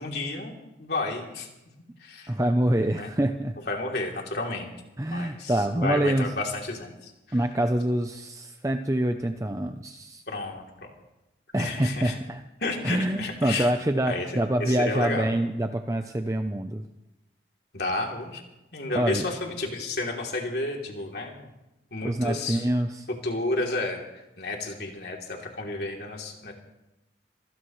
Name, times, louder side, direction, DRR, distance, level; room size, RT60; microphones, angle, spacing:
voice 1, 0.0-1.5 2.0-2.3 2.9-3.1 3.7-4.7 5.1-7.4 10.3-10.9 11.6-12.2 12.6-13.7 14.1-15.3 17.7-18.4 18.7-21.5 21.9-22.6 23.2-26.5, left 2 dB, 65° left, 0 dB, 3.2 m, -31 dB
voice 2, 2.3-3.5 5.0-6.3 7.3-10.2 11.5-12.4 12.8-16.8 18.9-19.3 22.0-23.1, right 1 dB, 20° right, 6 dB, 0.6 m, -26 dB
25.0 x 16.5 x 3.2 m, 0.95 s
head